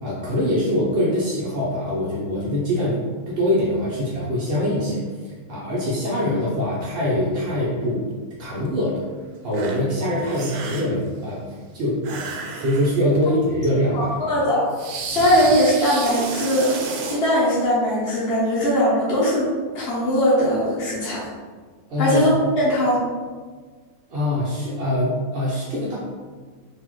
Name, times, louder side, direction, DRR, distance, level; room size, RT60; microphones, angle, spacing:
voice 1, 0.0-3.0 3.3-8.1 8.4-9.0 9.4-14.3 21.9-22.2 24.1-26.0, left 1 dB, 55° right, -7 dB, 0.7 m, -23 dB
sound 1, 8.6-8.7 9.5-9.8 10.1-11.0 12.0-13.3 13.6-13.8 14.7-17.2, right 4 dB, 75° right, 1.0 m, -31 dB
voice 2, 13.9-14.7 15.1-21.3 22.0-23.0, equal, 50° left, -8 dB, 0.9 m, -20 dB
3.9 x 2.8 x 3.0 m, 1.5 s
omnidirectional pair, 1.6 m